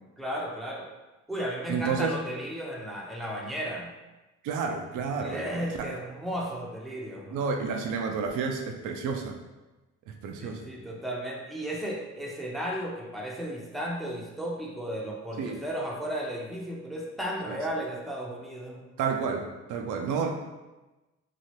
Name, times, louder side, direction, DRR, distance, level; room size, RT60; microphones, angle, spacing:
voice 1, 0.2-0.8 1.3-3.9 5.2-7.4 10.4-18.8, equal, ahead, -3 dB, 0.6 m, -34 dB
voice 2, 1.7-2.2 4.4-5.5 5.7-5.9 7.3-9.4 10.1-10.7 15.4-15.6 17.5-17.6 19.0-20.3, right 5 dB, 80° right, 3 dB, 0.5 m, -30 dB
2.9 x 2.4 x 3.0 m, 1.1 s
cardioid pair, 90°, 30 cm